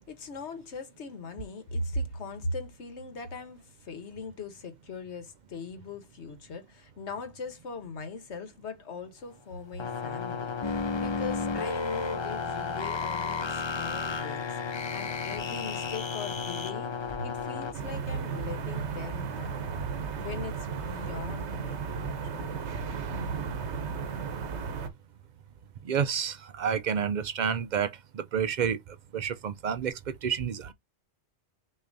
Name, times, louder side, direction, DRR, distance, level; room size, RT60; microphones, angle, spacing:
voice 1, 0.0-16.9 17.2-19.6 20.1-22.6 23.2-23.3, left 3 dB, 80° left, 1.4 m, -40 dB
sound 1, 9.8-17.7, left 5 dB, 35° left, 0.4 m, -32 dB
sound 2, 17.7-24.9, right 6 dB, 80° right, 1.1 m, -34 dB
voice 2, 25.8-28.8 29.1-30.7, right 7 dB, 60° right, 0.5 m, -29 dB
6.5 x 2.8 x 2.6 m
omnidirectional pair, 1.1 m